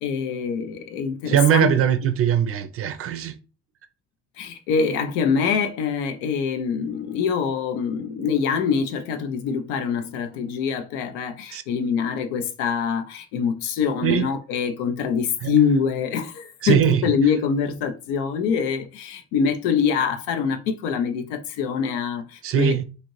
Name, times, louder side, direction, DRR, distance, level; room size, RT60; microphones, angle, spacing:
voice 1, 0.0-1.7 4.4-22.8, left 6 dB, 85° left, 0.5 m, -24 dB
voice 2, 1.3-3.4 11.5-11.6 14.0-14.3 15.4-15.5 16.6-17.0 22.4-22.8, right 9 dB, 40° right, 0.4 m, -21 dB
2.8 x 2.5 x 3.0 m
supercardioid pair, 70°, 35 cm